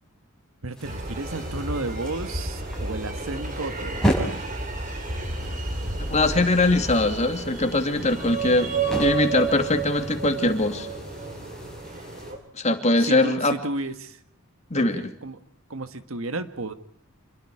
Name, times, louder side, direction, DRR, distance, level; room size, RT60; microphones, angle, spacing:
voice 1, 0.6-4.2 13.0-14.2 14.8-15.4 15.7-16.7, right 2 dB, 70° right, 11 dB, 1.6 m, -33 dB
sound 1, 0.7-12.3, right 1 dB, 5° left, 6.2 m, -34 dB
sound 2, 0.8-12.4, right 3 dB, 40° right, 3.6 m, -31 dB
voice 2, 6.1-10.9 12.5-13.6 14.7-15.1, left 2 dB, 30° left, 7 dB, 2.6 m, -22 dB
28.0 x 22.0 x 4.9 m, 0.63 s
head